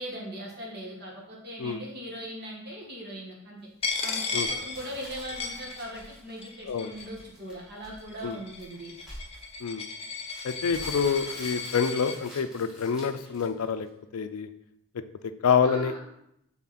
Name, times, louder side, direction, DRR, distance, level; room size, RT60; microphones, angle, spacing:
voice 1, 0.0-3.6 4.0-8.9 15.6-16.0, right 1 dB, 45° right, -2 dB, 1.5 m, -40 dB
Coin (dropping), 3.8-6.1 6.4-7.2 7.9-12.2, left 4 dB, 25° left, 0.6 m, -35 dB
sound 1, 4.4-13.9, left 1 dB, 5° right, 1.6 m, -47 dB
voice 2, 10.4-13.9 14.1-14.5 14.9-16.0, left 6 dB, 80° left, 10 dB, 0.4 m, -27 dB
6.0 x 3.8 x 4.2 m, 0.78 s
head